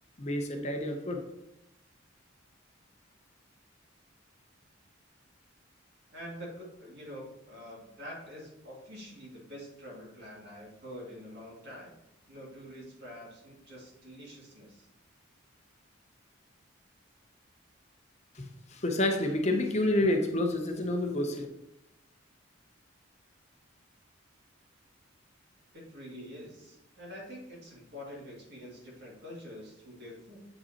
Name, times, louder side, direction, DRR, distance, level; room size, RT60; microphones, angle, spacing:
voice 1, 0.2-1.2 18.3-21.5, left 1 dB, 35° left, 4 dB, 0.7 m, -29 dB
voice 2, 6.1-11.9 12.3-14.9 25.7-30.4, equal, 55° right, -4 dB, 2.2 m, -46 dB
8.3 x 5.3 x 2.9 m, 0.88 s
head